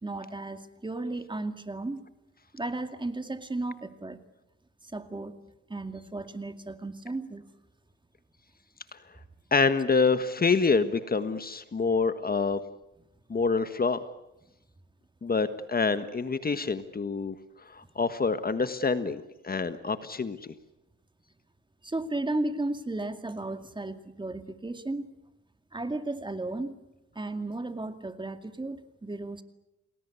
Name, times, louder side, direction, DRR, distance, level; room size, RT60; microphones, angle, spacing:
voice 1, 0.0-2.0 2.5-4.2 4.8-5.4 5.7-7.5 21.8-25.1 25.7-26.8 27.1-29.4, right 2 dB, 15° right, 9 dB, 2.3 m, -34 dB
voice 2, 9.5-12.6 13.3-14.0 15.2-17.3 17.7-20.4, left 4 dB, 30° left, 11 dB, 1.5 m, -26 dB
29.5 x 20.5 x 8.3 m, 0.91 s
cardioid pair, 90°, 30 cm